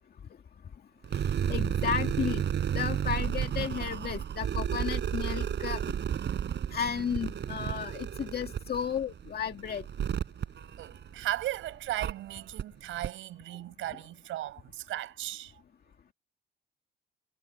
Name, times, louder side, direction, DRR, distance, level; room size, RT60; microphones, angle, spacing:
sound 1, 1.0-11.4 12.0-12.1 12.6-12.7 13.0-13.1, right 9 dB, 60° right, 7.7 m, -32 dB
voice 1, 1.1-2.4 2.7-6.0 6.7-9.8, left 7 dB, 50° left, 2.1 m, -33 dB
voice 2, 10.8-15.5, right 14 dB, 90° right, 5.6 m, -36 dB
cardioid pair, 90°, 20 cm